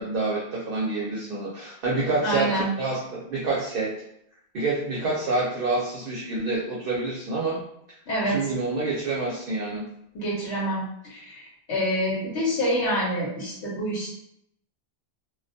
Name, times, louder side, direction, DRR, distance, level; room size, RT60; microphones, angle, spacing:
voice 1, 0.0-3.9 4.5-7.6 8.3-9.9, right 3 dB, 60° right, -4 dB, 0.7 m, -27 dB
voice 2, 2.2-2.7 8.1-8.4 10.1-14.1, equal, 85° left, -6 dB, 1.0 m, -27 dB
2.2 x 2.1 x 2.6 m, 0.76 s
omnidirectional pair, 1.1 m